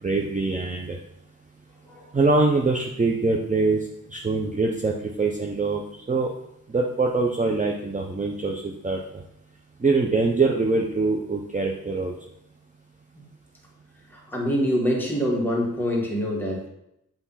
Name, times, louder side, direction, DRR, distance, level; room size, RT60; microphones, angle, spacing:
voice 1, 0.0-1.0 2.1-5.8 6.1-6.3 6.7-9.2 9.8-12.1, right 3 dB, 25° right, 0 dB, 0.7 m, -24 dB
voice 2, 14.1-16.7, equal, 5° left, -2 dB, 1.9 m, -25 dB
8.3 x 3.4 x 5.7 m, 0.80 s
wide cardioid pair, 110°, 33 cm